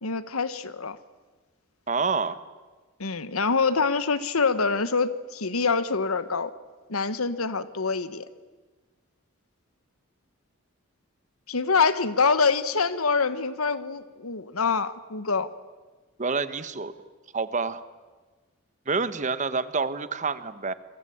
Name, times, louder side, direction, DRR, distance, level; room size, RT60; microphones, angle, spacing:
voice 1, 0.0-1.0 3.0-6.5 6.9-8.3 11.5-15.5, left 4 dB, 90° left, 14 dB, 1.3 m, -25 dB
voice 2, 1.9-2.4 16.2-16.9 17.3-17.8 18.9-20.7, right 4 dB, 35° right, 13 dB, 1.1 m, -27 dB
27.5 x 23.0 x 8.7 m, 1.3 s
head